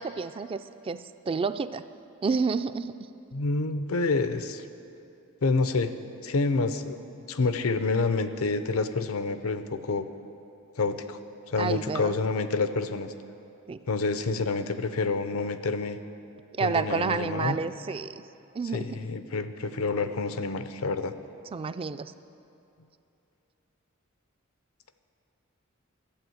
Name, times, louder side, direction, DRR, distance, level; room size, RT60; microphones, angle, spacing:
voice 1, 0.0-1.8 2.2-3.0 11.6-12.2 13.7-13.8 16.6-18.2 18.5-19.0 21.5-22.1, right 5 dB, 25° right, 12 dB, 0.3 m, -30 dB
voice 2, 3.3-4.7 5.4-5.9 6.2-10.1 10.8-11.2 11.5-13.1 13.9-16.0 16.6-17.6 18.7-21.1, left 3 dB, 90° left, 11 dB, 0.7 m, -28 dB
12.0 x 8.8 x 7.8 m, 2.8 s
head